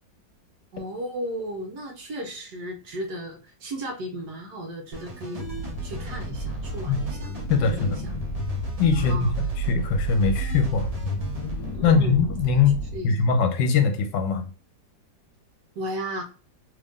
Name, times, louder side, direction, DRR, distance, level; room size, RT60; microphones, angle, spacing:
voice 1, 0.7-5.5 5.8-7.3 7.6-8.2 9.0-9.3 11.7-12.3 12.9-13.3 15.8-16.2, right 1 dB, 65° right, 1.3 m, -34 dB
sound 1, 4.9-11.8, right 1 dB, 35° right, 0.6 m, -40 dB
sound 2, 5.4-13.0, right 1 dB, 60° left, 1.5 m, -31 dB
voice 2, 7.5-8.0 8.8-10.9 11.8-14.5, left 5 dB, 80° left, 1.3 m, -22 dB
3.3 x 2.5 x 3.5 m
omnidirectional pair, 2.0 m